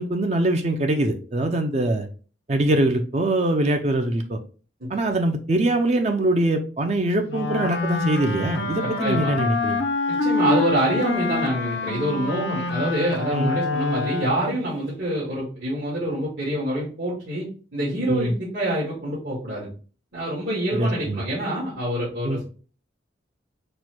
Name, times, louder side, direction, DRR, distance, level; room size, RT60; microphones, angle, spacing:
voice 1, 0.0-2.1 2.5-4.4 4.9-9.8 13.3-13.6 18.1-18.3 20.7-21.2 22.2-22.4, right 1 dB, 35° right, 6 dB, 0.4 m, -23 dB
Wind instrument woodwind instrument, 7.3-14.7, left 3 dB, 75° left, 0.5 m, -26 dB
voice 2, 9.0-9.4 10.1-19.7 20.1-22.4, right 1 dB, 75° right, -8 dB, 1.7 m, -26 dB
4.3 x 2.2 x 4.3 m, 0.38 s
head